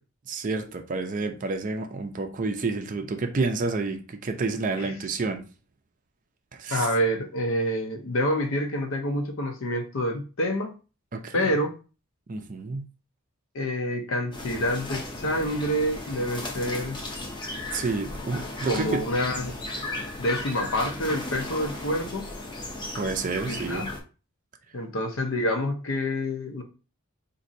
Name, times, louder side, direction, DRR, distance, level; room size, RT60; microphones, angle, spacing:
voice 1, 0.3-5.4 6.5-6.9 11.1-11.5 12.3-12.8 17.7-19.0 23.0-23.9, right 3 dB, 35° right, 5 dB, 0.4 m, -29 dB
voice 2, 6.7-10.7 11.3-11.7 13.5-17.0 18.7-19.5 20.2-22.3 23.5-23.9 24.7-26.6, equal, 65° left, 5 dB, 0.6 m, -27 dB
sound 1, 14.3-24.0, left 2 dB, 20° left, 0.6 m, -35 dB
4.0 x 2.6 x 2.6 m, 0.34 s
head